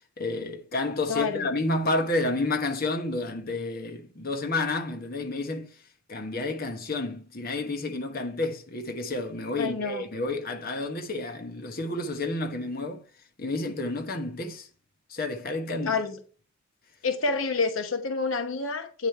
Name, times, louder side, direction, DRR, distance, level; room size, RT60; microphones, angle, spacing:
voice 1, 0.2-5.7 6.1-13.0 13.4-14.7 15.1-16.0, left 2 dB, 45° left, 1.2 m, -30 dB
voice 2, 1.1-1.5 9.6-10.0 15.8-16.2 17.0-19.1, left 4 dB, 75° left, 0.9 m, -28 dB
8.5 x 5.1 x 4.5 m
head